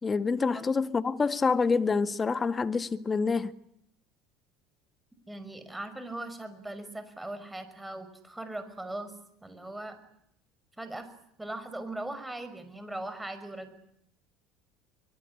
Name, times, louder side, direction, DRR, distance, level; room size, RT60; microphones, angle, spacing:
voice 1, 0.0-3.5, left 4 dB, 25° left, 1.7 m, -27 dB
voice 2, 5.3-9.1 9.4-10.0 10.8-11.1 11.4-13.7, right 1 dB, 10° right, 6.0 m, -39 dB
24.0 x 22.5 x 9.9 m
hypercardioid pair, 80°, 0 cm